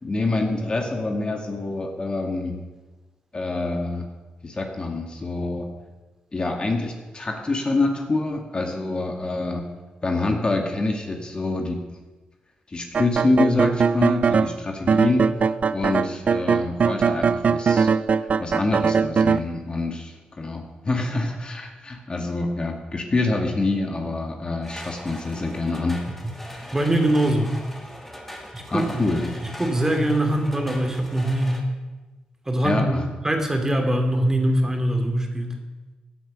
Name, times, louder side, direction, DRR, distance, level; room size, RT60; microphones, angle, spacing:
voice 1, 0.0-2.6 3.3-4.1 4.4-5.7 6.3-9.7 10.0-11.9 12.7-17.9 18.2-26.0 28.7-29.3 32.6-33.1, left 2 dB, 35° left, 3 dB, 2.0 m, -26 dB
sound 1, 12.9-14.5 14.9-19.4, right 5 dB, 50° right, 0.5 m, -20 dB
sound 2, 24.6-31.6, equal, 10° left, 2.7 m, -40 dB
voice 2, 26.7-27.5 28.5-29.1 29.4-31.6 32.5-35.6, right 1 dB, 15° right, 3 dB, 2.7 m, -22 dB
16.0 x 9.2 x 6.3 m, 1.2 s
cardioid pair, 85°, 3 cm